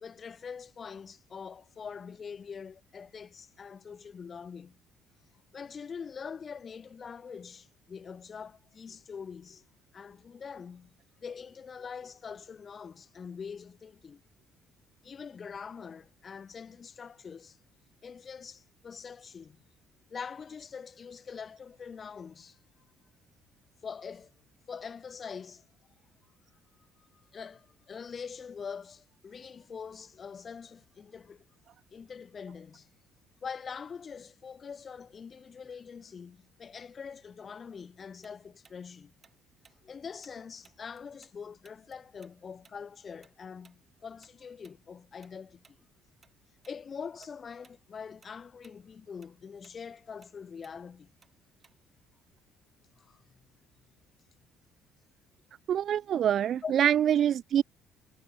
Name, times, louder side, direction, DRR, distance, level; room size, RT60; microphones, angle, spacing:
voice 1, 0.0-4.8 5.5-9.6 9.9-14.2 15.0-17.6 18.0-19.6 20.1-22.6 23.8-24.3 24.7-25.7 27.0-31.5 31.9-32.9 33.4-39.1 39.8-45.8 46.7-51.1 53.0-53.5 56.6-56.7, left 6 dB, 25° left, 1.0 m, -44 dB
Tick-tock, 38.2-41.4 41.6-46.4 46.6-46.8 47.2-47.8 48.1-52.1, right 5 dB, 20° right, 7.7 m, -64 dB
voice 2, 55.7-57.6, right 10 dB, 40° right, 0.5 m, -25 dB
cardioid pair, 170°, 0 cm